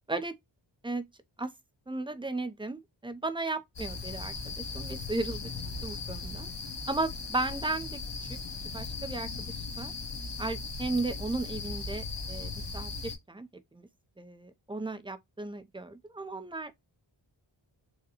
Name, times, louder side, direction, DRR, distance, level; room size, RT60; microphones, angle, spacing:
voice 1, 1.9-5.5 5.8-6.5 6.9-8.0 8.7-9.5 9.8-9.9 10.4-13.9 14.2-16.8, right 2 dB, 10° right, 0.6 m, -35 dB
sound 1, 3.8-13.2, left 4 dB, 55° left, 1.2 m, -38 dB
4.7 x 2.2 x 2.9 m
wide cardioid pair, 55°, 49 cm